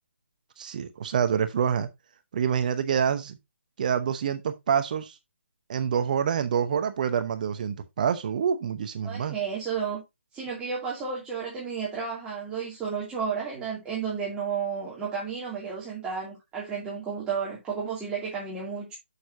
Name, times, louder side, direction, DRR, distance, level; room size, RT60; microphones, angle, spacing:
voice 1, 0.6-1.9 2.3-3.4 3.8-5.2 5.7-9.4, right 7 dB, 40° right, 0.8 m, -26 dB
voice 2, 9.0-10.0 10.3-18.9, right 6 dB, 10° right, 2.7 m, -32 dB
10.0 x 6.7 x 2.7 m
figure-of-eight pair, 145°, 7 cm